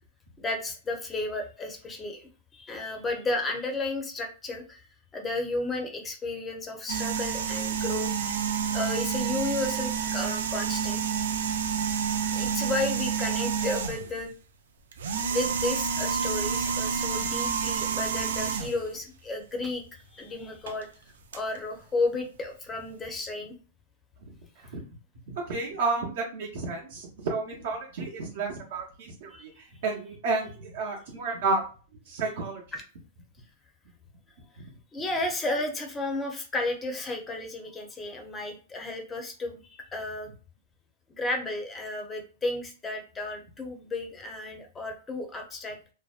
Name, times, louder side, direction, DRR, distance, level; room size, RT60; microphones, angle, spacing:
voice 1, 0.4-4.8 5.1-8.1 8.7-11.0 11.5-11.6 12.3-14.3 15.3-19.8 20.1-20.9 21.3-23.6 29.3-29.4 32.7-32.8 34.9-40.3 41.1-45.8, left 2 dB, 15° left, 3 dB, 0.6 m, -33 dB
sound 1, 6.9-14.2 14.9-18.9 20.7-20.8 21.3-21.4, right 7 dB, 90° right, 0.4 m, -29 dB
voice 2, 25.5-29.5 29.8-31.6 32.1-32.6, right 3 dB, 60° right, -2 dB, 0.8 m, -31 dB
2.6 x 2.1 x 2.4 m, 0.37 s
supercardioid pair, 150°, 0 cm